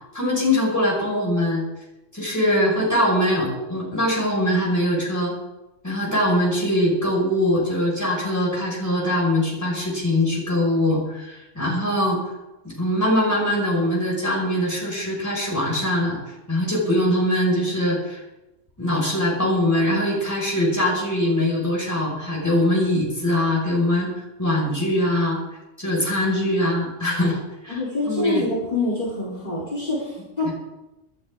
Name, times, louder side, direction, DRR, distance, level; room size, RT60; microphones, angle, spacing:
voice 1, 0.1-1.6 2.1-5.3 5.8-12.2 12.6-16.2 16.5-18.2 18.8-24.1 24.4-25.4 25.8-27.4 27.6-27.8 28.1-28.4 30.5-30.6, left 1 dB, 15° left, -3 dB, 5.1 m, -22 dB
voice 2, 27.7-30.5, left 2 dB, 30° left, -6 dB, 3.8 m, -26 dB
24.0 x 12.0 x 3.6 m, 0.98 s
omnidirectional pair, 1.3 m